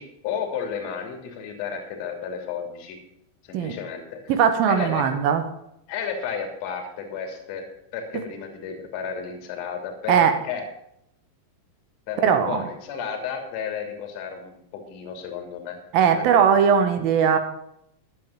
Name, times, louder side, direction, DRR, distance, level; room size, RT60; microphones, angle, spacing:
voice 1, 0.0-3.0 3.4-4.2 4.7-5.1 5.9-7.7 7.9-10.6 12.1-15.8 16.1-16.3, left 6 dB, 45° left, 3 dB, 2.9 m, -32 dB
voice 2, 4.3-5.4 10.1-10.3 12.2-12.7 15.9-17.4, right 7 dB, 45° right, 7 dB, 1.4 m, -19 dB
12.0 x 7.9 x 7.5 m, 0.78 s
figure-of-eight pair, 90°, 0 cm